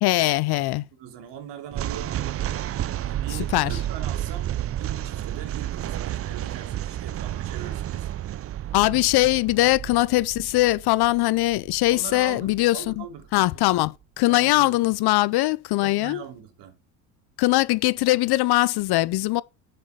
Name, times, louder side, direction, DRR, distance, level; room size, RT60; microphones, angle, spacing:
voice 1, 0.0-0.9 3.5-3.8 8.7-13.0 13.3-16.2 17.4-19.4, left 18 dB, 55° left, 0.7 m, -21 dB
voice 2, 0.9-2.2 3.0-8.1 11.9-13.3 14.3-14.9 15.8-16.8, right 9 dB, 65° right, 2.9 m, -41 dB
sound 1, 1.7-13.0, right 12 dB, 30° right, 0.5 m, -31 dB
7.4 x 6.8 x 4.8 m
hypercardioid pair, 75°, 47 cm